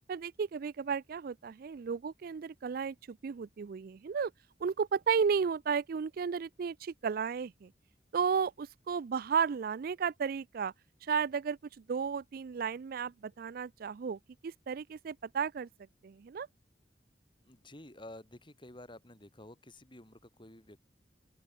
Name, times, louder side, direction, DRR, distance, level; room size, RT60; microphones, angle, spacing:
voice 1, 0.1-4.3 4.6-7.7 8.1-10.7 11.0-11.6 11.9-15.7 16.0-16.5, right 6 dB, 55° right, 0.4 m, -33 dB
voice 2, 17.4-20.8, left 1 dB, 30° left, 4.7 m, -51 dB
open air
head